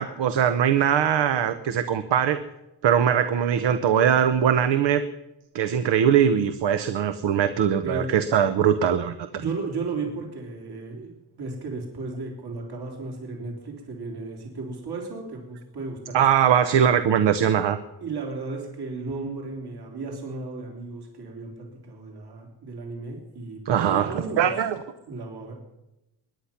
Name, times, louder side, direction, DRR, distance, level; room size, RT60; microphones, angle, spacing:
voice 1, 0.0-2.4 2.8-5.0 5.5-9.4 16.1-17.8 23.7-24.8, right 8 dB, 85° right, 10 dB, 0.9 m, -21 dB
voice 2, 9.4-16.2 18.0-24.5 25.1-25.5, right 3 dB, 65° right, 1 dB, 3.3 m, -34 dB
22.5 x 10.0 x 5.8 m, 0.94 s
wide cardioid pair, 135°, 42 cm